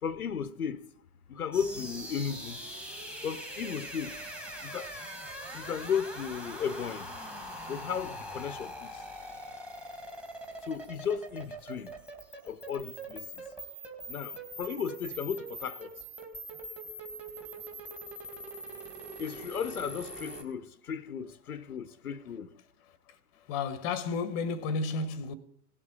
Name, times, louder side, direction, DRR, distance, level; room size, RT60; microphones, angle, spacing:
voice 1, 0.0-0.9 1.3-2.6 3.2-4.2 4.6-4.9 5.5-7.1 7.7-9.0 10.6-11.9 12.5-13.4 14.1-15.9 19.2-22.5, left 7 dB, 60° left, 1.0 m, -35 dB
sound 1, 1.5-20.4, right 1 dB, ahead, 2.1 m, -43 dB
voice 2, 23.5-25.3, left 4 dB, 25° left, 1.3 m, -32 dB
17.5 x 7.7 x 8.8 m
figure-of-eight pair, 115°, 49 cm